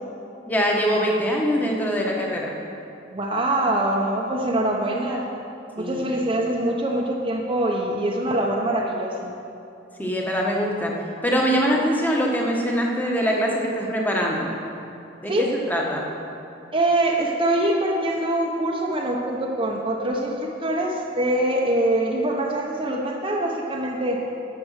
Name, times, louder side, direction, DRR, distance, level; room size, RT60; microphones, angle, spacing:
voice 1, 0.5-2.5 5.8-6.1 10.0-10.9 11.2-14.5 15.2-16.0, equal, 10° left, -2 dB, 1.3 m, -23 dB
voice 2, 3.1-5.3 5.7-9.3 15.3-15.5 16.7-24.2, right 1 dB, 25° right, -1 dB, 0.8 m, -24 dB
10.5 x 6.9 x 6.4 m, 2.8 s
head